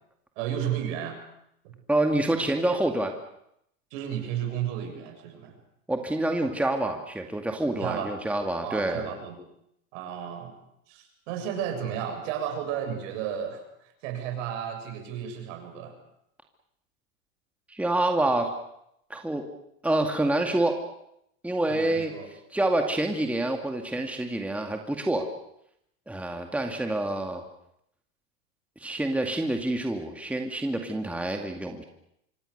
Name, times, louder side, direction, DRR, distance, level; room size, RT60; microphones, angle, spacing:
voice 1, 0.4-1.2 1.6-1.7 3.9-5.6 7.8-8.1 8.6-9.4 9.9-10.6 10.9-13.6 14.0-15.9 21.7-22.3, right 9 dB, 60° right, 5 dB, 7.3 m, -33 dB
voice 2, 1.9-3.1 5.9-9.1 17.7-18.5 19.1-19.5 19.8-20.8 21.4-22.1 22.5-25.3 26.1-27.4 28.8-31.8, right 1 dB, 5° right, 4 dB, 2.3 m, -27 dB
26.0 x 24.0 x 6.8 m, 0.77 s
hypercardioid pair, 115°, 42 cm